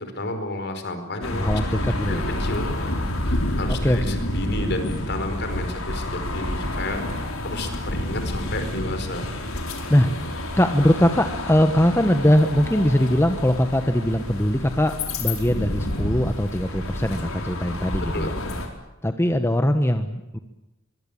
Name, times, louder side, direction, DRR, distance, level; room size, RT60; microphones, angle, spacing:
voice 1, 0.0-1.5 1.7-2.9 3.2-7.0 7.4-9.2 18.0-18.6, left 2 dB, 55° left, 7 dB, 4.9 m, -31 dB
sound 1, 1.2-18.7, left 1 dB, 85° left, 4.8 m, -29 dB
voice 2, 1.3-2.2 3.7-4.0 9.9-18.3 19.0-20.4, equal, 10° left, 7 dB, 1.2 m, -21 dB
23.5 x 23.0 x 8.8 m, 0.96 s
head